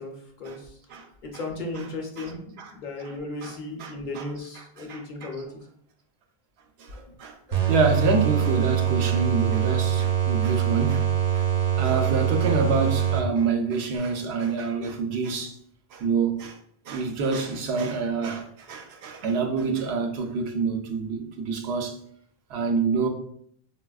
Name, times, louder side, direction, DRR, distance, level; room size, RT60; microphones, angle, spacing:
voice 1, 0.0-0.8 1.2-5.6 6.9-7.2, left 2 dB, 55° left, 0.7 m, -36 dB
voice 2, 3.8-4.2 4.9-5.3 6.8-11.1 11.3-11.5 11.8-15.5 15.9-16.6 16.9-22.0 22.5-23.1, right 4 dB, 85° right, 0.8 m, -27 dB
sound 1, 7.5-13.6, right 10 dB, 55° right, 0.7 m, -24 dB
4.0 x 2.2 x 2.3 m
omnidirectional pair, 1.0 m